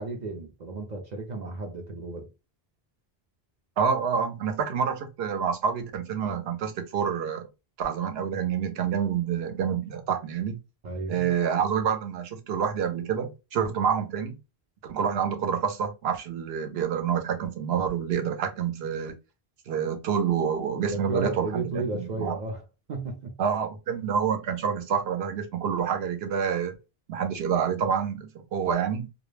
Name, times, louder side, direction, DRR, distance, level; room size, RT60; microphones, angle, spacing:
voice 1, 0.0-2.3 10.8-11.3 20.9-22.6 22.9-23.3, right 3 dB, 55° right, 0.5 m, -33 dB
voice 2, 3.8-7.5 7.8-10.5 11.1-14.4 14.9-19.1 19.7-22.4 23.4-26.7 27.1-29.1, right 7 dB, 80° right, 0.8 m, -27 dB
2.2 x 2.0 x 3.1 m
omnidirectional pair, 1.1 m